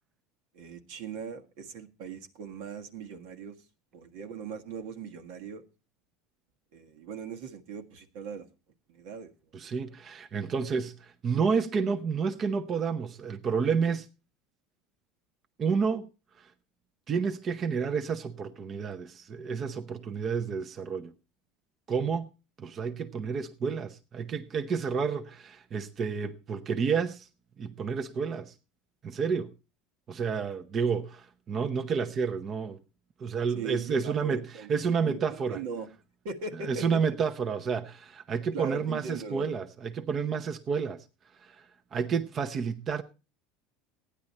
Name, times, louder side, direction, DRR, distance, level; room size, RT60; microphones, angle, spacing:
voice 1, 0.5-3.5 3.9-5.6 6.7-8.5 8.9-9.3 9.6-9.7 33.5-34.7 35.0-35.9 36.2-37.0 38.5-39.6, right 5 dB, 75° right, 1.6 m, -39 dB
voice 2, 9.5-14.1 15.6-16.1 16.4-16.5 17.1-21.1 21.9-22.3 22.6-27.3 27.6-28.5 29.0-29.5 30.1-32.8 33.2-34.4 34.7-35.6 36.6-41.0 41.4-41.6 41.9-43.0, right 6 dB, 35° right, 0.8 m, -30 dB
15.0 x 9.9 x 4.2 m
supercardioid pair, 120°, 0 cm